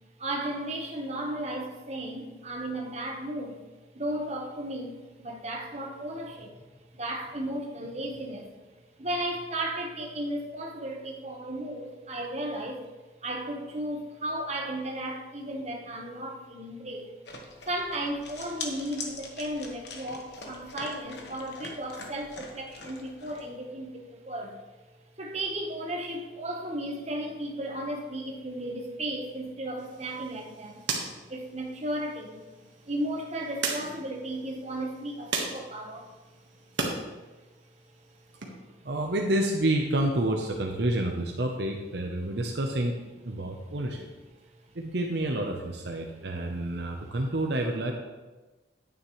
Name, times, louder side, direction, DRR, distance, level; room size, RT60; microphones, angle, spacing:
voice 1, 0.2-3.6 3.9-6.6 6.9-8.5 9.0-12.8 13.2-17.1 17.7-24.6 25.2-30.8 31.3-32.4 32.8-36.1 43.7-43.8 46.9-47.2, right 1 dB, 35° right, 1 dB, 1.1 m, -35 dB
sound 1, 17.3-23.4, left 3 dB, 60° left, 1.3 m, -43 dB
sound 2, 29.8-37.0 37.3-38.5, right 4 dB, 80° right, 1.5 m, -37 dB
voice 2, 38.8-43.0 43.2-44.1 44.7-47.9, right 1 dB, 60° right, 2 dB, 0.8 m, -29 dB
9.7 x 9.4 x 3.2 m, 1.2 s
head